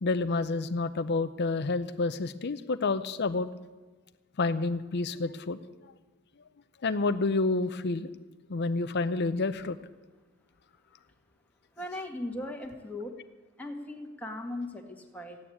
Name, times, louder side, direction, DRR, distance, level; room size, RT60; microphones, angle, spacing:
voice 1, 0.0-3.5 4.4-5.6 6.8-8.1 8.5-9.8, left 3 dB, 50° left, 10 dB, 0.6 m, -29 dB
voice 2, 11.8-13.2 13.6-15.4, left 1 dB, 5° left, 1 dB, 1.9 m, -38 dB
15.0 x 9.5 x 9.9 m, 1.3 s
head